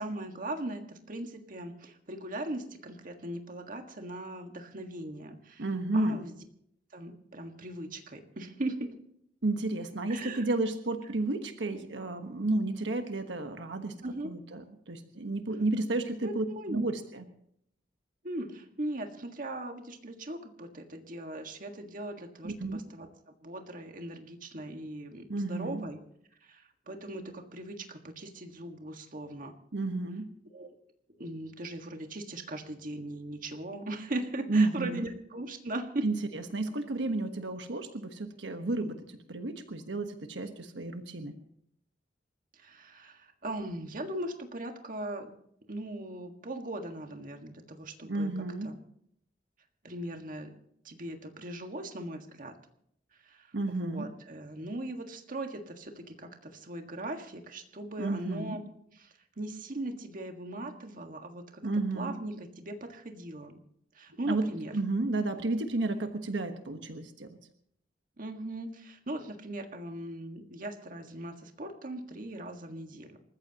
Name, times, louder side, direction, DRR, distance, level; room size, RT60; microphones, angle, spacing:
voice 1, 0.0-5.7 5.9-6.3 6.9-8.9 10.1-10.5 14.0-14.3 16.2-16.8 18.2-23.1 23.4-26.0 26.4-29.5 30.5-30.7 31.2-36.1 42.5-45.3 45.7-48.3 48.6-48.7 49.8-50.5 50.8-52.5 53.2-58.6 59.0-61.6 61.9-63.6 63.9-64.7 68.2-73.2, right 1 dB, 50° right, 4 dB, 1.7 m, -39 dB
voice 2, 5.6-6.2 9.4-14.0 14.2-17.2 22.4-22.8 25.3-25.8 29.7-30.3 34.5-35.1 36.0-39.0 39.3-41.3 48.0-48.7 53.5-54.1 58.0-58.6 61.6-62.1 64.2-64.5 64.7-67.4, right 2 dB, 85° right, 6 dB, 1.3 m, -32 dB
28.0 x 14.5 x 2.9 m, 0.70 s
head